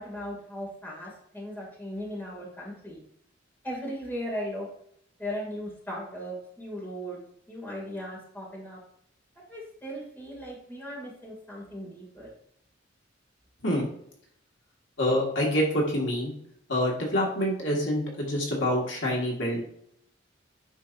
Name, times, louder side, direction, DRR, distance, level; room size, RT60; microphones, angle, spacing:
voice 1, 0.0-3.0 3.6-4.7 5.2-7.2 7.5-8.8 9.5-12.3, equal, 10° left, -4 dB, 2.4 m, -37 dB
voice 2, 15.0-16.3 16.7-19.6, equal, 75° left, -2 dB, 1.9 m, -26 dB
9.2 x 5.9 x 2.6 m, 0.69 s
head